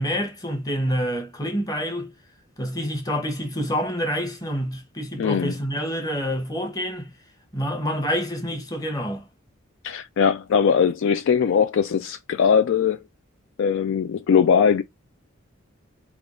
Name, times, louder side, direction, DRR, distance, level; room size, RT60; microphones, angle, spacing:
voice 1, 0.0-2.1 2.6-7.1 7.5-9.2, equal, 20° left, 0.9 m, -27 dB
voice 2, 5.2-5.5 9.8-13.0 13.6-14.8, left 7 dB, 65° left, 0.3 m, -20 dB
3.4 x 2.3 x 3.7 m
head